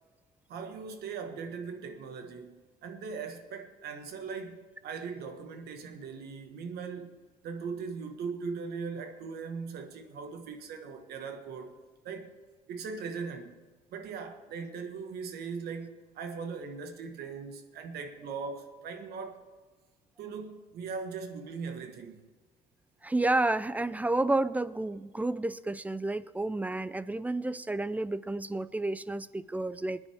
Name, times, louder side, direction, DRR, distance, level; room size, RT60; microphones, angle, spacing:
voice 1, 0.5-7.2 7.4-11.7 12.0-12.3 12.7-13.6 13.9-19.4 20.2-22.2, right 5 dB, 70° right, 1.5 m, -39 dB
voice 2, 23.0-30.0, right 2 dB, 10° right, 0.4 m, -30 dB
20.5 x 9.8 x 3.5 m
cardioid pair, 110°, 17 cm